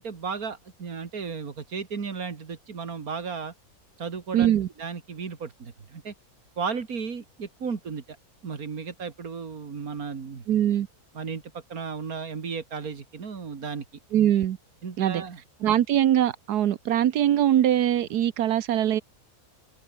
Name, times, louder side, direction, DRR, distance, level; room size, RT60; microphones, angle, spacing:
voice 1, 0.0-3.5 4.0-4.5 4.8-6.1 6.6-8.2 8.4-10.4 11.1-13.9 14.8-15.4, right 5 dB, 65° right, 2.6 m, -34 dB
voice 2, 4.3-4.7 10.5-10.9 14.1-14.6 15.0-15.2 15.6-19.0, right 11 dB, 85° right, 1.5 m, -22 dB
omnidirectional pair, 1.6 m